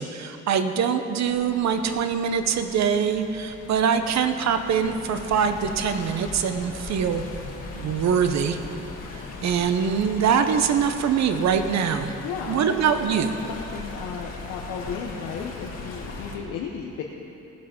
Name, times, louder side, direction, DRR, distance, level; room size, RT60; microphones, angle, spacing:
voice 1, 0.0-7.2 7.7-8.6 9.1-12.1 12.5-13.3, right 7 dB, 65° right, 8 dB, 0.8 m, -23 dB
Stream, 1.2-16.4, left 3 dB, 60° left, 1.9 m, -39 dB
voice 2, 12.2-12.8 13.2-17.0, left 6 dB, 90° left, 0 dB, 0.8 m, -34 dB
17.5 x 5.9 x 5.2 m, 2.9 s
cardioid pair, 90°, 30 cm